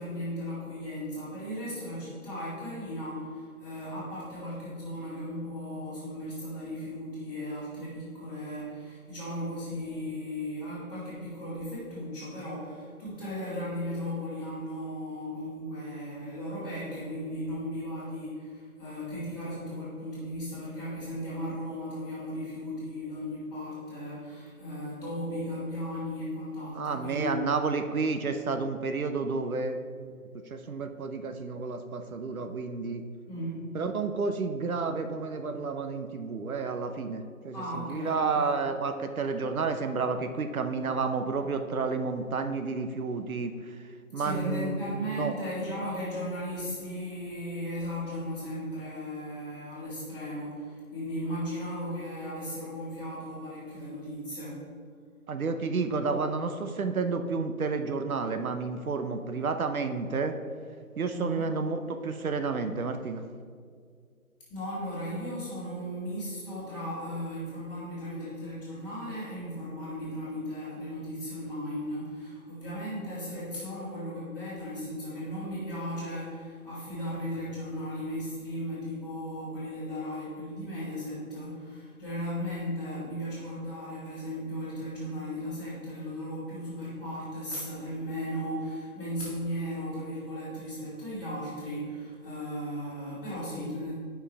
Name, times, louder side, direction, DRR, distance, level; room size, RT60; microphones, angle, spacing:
voice 1, 0.0-27.3 33.3-33.6 37.5-38.5 44.1-54.6 61.1-61.5 64.5-93.9, equal, 5° left, -18 dB, 1.7 m, -36 dB
voice 2, 26.7-33.1 33.7-43.5 44.1-45.3 55.3-60.4 61.0-63.2, right 4 dB, 70° right, 7 dB, 0.8 m, -31 dB
9.0 x 5.7 x 3.3 m, 2.1 s
figure-of-eight pair, 165°, 44 cm